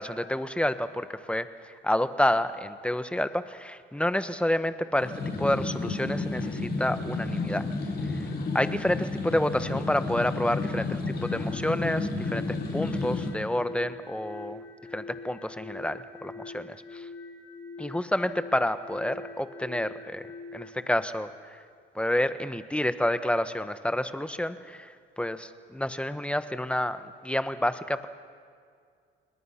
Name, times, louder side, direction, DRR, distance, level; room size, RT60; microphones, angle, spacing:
voice 1, 0.0-1.5 1.8-5.1 5.4-7.7 8.1-8.2 8.5-12.4 12.7-14.6 14.9-17.1 17.8-20.3 20.5-21.6 21.9-28.1, left 1 dB, 5° left, 11 dB, 1.2 m, -29 dB
sound 1, 4.9-13.3, left 3 dB, 55° left, 5.8 m, -31 dB
sound 2, 11.1-20.8, left 3 dB, 85° left, 4.2 m, -44 dB
29.5 x 21.0 x 5.9 m, 2.1 s
cardioid pair, 90°, 20 cm